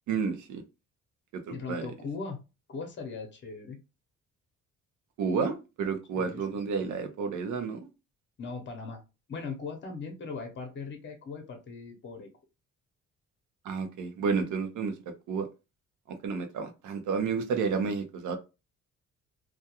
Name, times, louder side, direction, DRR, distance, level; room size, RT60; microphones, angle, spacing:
voice 1, 0.1-0.6 1.3-1.9 5.2-7.9 13.6-14.9 15.3-15.5 16.1-18.4, right 5 dB, 75° right, 7 dB, 0.7 m, -31 dB
voice 2, 1.5-2.4 2.7-3.8 6.2-6.5 8.4-9.0 9.3-12.3, left 4 dB, 40° left, 5 dB, 0.8 m, -39 dB
2.3 x 2.2 x 2.8 m, 0.28 s
cardioid pair, 90°, 30 cm